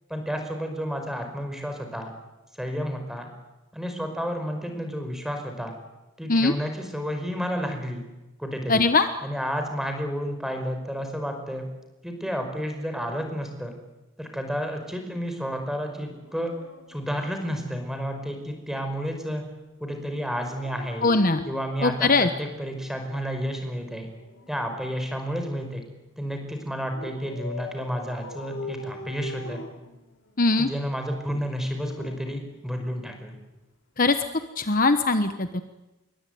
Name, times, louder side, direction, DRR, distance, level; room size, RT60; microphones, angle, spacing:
voice 1, 0.1-2.1 2.6-3.3 3.7-5.7 6.2-8.0 8.4-8.8 9.2-11.7 12.0-13.7 14.2-16.5 16.9-19.4 19.8-21.1 21.5-24.1 24.5-25.8 26.2-29.6 30.6-33.4, equal, ahead, 5 dB, 5.4 m, -31 dB
voice 2, 8.7-9.1 21.0-21.5 21.8-22.3 30.4-30.7 34.0-34.2 34.6-35.6, left 3 dB, 40° left, 9 dB, 1.1 m, -21 dB
Dog, 16.1-18.0 20.4-22.8 24.1-25.8 26.9-30.5 31.4-33.1 34.4-34.6, left 2 dB, 70° left, 4.4 m, -42 dB
27.5 x 23.0 x 9.4 m, 1.1 s
head